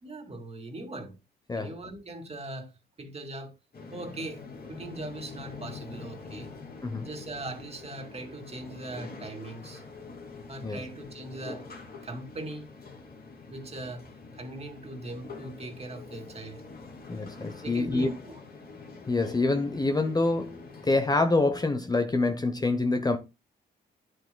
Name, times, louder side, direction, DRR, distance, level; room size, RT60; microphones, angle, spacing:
voice 1, 0.0-1.1 1.6-2.7 3.0-3.5 3.9-6.5 7.0-9.8 10.5-11.7 12.0-12.7 13.5-16.6 17.6-18.4, right 2 dB, 30° right, 2.3 m, -40 dB
sound 1, 3.7-21.2, left 4 dB, 50° left, 2.5 m, -45 dB
voice 2, 17.1-18.1 19.1-23.2, left 2 dB, 20° left, 0.9 m, -26 dB
9.6 x 7.8 x 2.2 m
cardioid pair, 90°, 20 cm